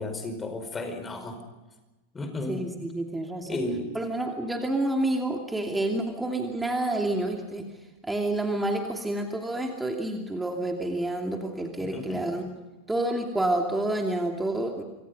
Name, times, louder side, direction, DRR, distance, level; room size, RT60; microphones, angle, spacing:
voice 1, 0.0-1.4 2.1-2.6 3.5-3.9 11.8-12.3, left 2 dB, 15° left, 7 dB, 4.9 m, -33 dB
voice 2, 2.5-3.6 3.9-7.7 8.0-12.5 12.9-14.8, right 1 dB, 5° right, 3 dB, 2.7 m, -29 dB
27.5 x 25.0 x 5.4 m, 1.1 s
figure-of-eight pair, 90°, 0 cm